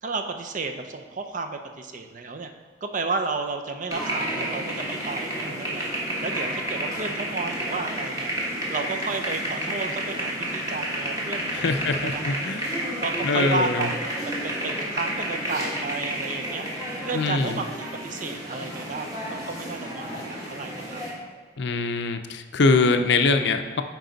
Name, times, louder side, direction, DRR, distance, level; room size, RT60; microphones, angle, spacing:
voice 1, 0.0-2.5 2.8-5.9 6.2-8.3 8.7-12.3 13.0-13.9 14.2-16.7 17.0-21.1, right 3 dB, 45° right, 6 dB, 0.6 m, -32 dB
sound 1, 3.9-21.1, right 1 dB, 20° right, 1.6 m, -31 dB
voice 2, 11.5-12.6 13.2-13.9 17.1-17.6 21.6-23.8, left 3 dB, 65° left, 8 dB, 0.5 m, -23 dB
9.2 x 4.7 x 3.9 m, 1.5 s
head